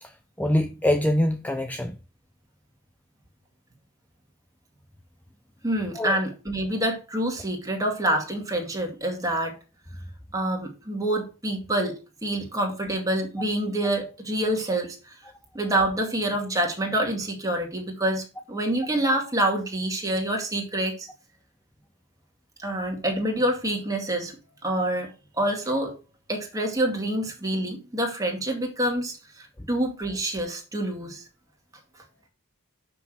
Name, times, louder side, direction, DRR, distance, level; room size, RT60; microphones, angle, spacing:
voice 1, 0.0-2.0 5.9-6.2, left 1 dB, 10° left, 0.5 m, -25 dB
voice 2, 5.6-9.6 10.3-11.9 12.2-15.1 15.5-21.1 22.6-24.3 24.6-25.9 26.3-31.2, right 1 dB, 15° right, 2.2 m, -27 dB
6.0 x 5.9 x 6.1 m
head